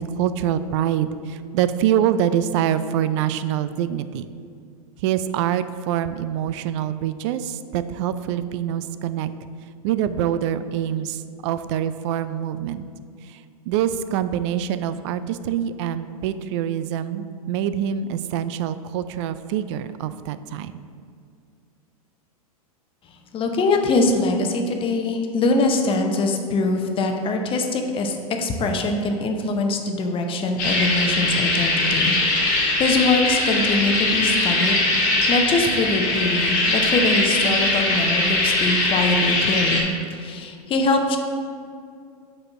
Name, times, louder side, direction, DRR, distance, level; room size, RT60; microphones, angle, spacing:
voice 1, 0.0-4.3 5.0-9.3 9.8-12.8 13.7-20.8, right 10 dB, 50° right, 13 dB, 0.4 m, -25 dB
voice 2, 23.3-41.2, left 2 dB, 25° left, 4 dB, 0.7 m, -23 dB
sound 1, 30.6-39.8, left 2 dB, 45° left, 1.5 m, -21 dB
5.1 x 4.2 x 5.8 m, 2.3 s
hypercardioid pair, 100°, 20 cm